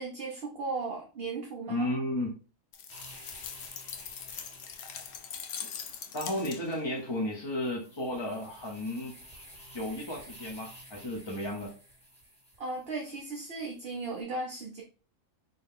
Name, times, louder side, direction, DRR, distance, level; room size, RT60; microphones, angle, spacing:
voice 1, 0.0-1.9 12.6-14.8, right 3 dB, 50° right, 0 dB, 0.8 m, -36 dB
voice 2, 1.7-2.3 6.1-9.2 9.7-11.7, left 1 dB, 30° left, -1 dB, 0.6 m, -33 dB
sound 1, 2.7-6.9, left 7 dB, 65° left, 0.7 m, -42 dB
sound 2, 2.9-14.2, equal, 5° left, 1.6 m, -53 dB
3.7 x 2.8 x 3.5 m, 0.36 s
omnidirectional pair, 1.5 m